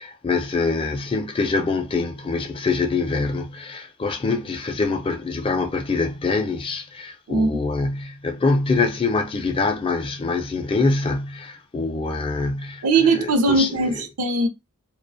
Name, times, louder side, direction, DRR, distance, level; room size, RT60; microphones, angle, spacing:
voice 1, 0.0-12.8 13.2-14.0, left 3 dB, 25° left, 0.3 m, -24 dB
voice 2, 7.3-7.6 12.8-14.5, right 3 dB, 75° right, 0.5 m, -20 dB
2.4 x 2.2 x 2.5 m
head